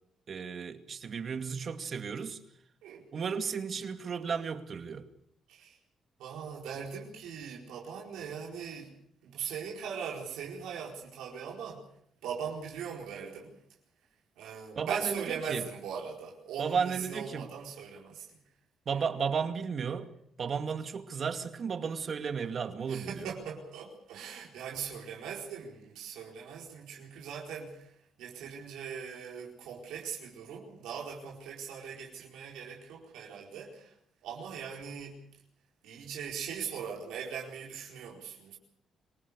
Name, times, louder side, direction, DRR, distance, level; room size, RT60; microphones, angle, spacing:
voice 1, 0.3-2.4 3.1-5.1 14.8-15.6 16.6-17.5 18.9-20.1 20.4-23.3, right 6 dB, 50° right, 2.4 m, -34 dB
voice 2, 2.8-3.3 5.5-5.8 6.2-8.9 9.2-11.8 12.2-13.5 14.4-18.3 18.9-19.0 22.9-27.9 28.2-33.9 34.2-35.2 35.8-38.6, right 7 dB, 90° right, 4.6 m, -40 dB
26.5 x 18.0 x 6.9 m
cardioid pair, 90°, 0 cm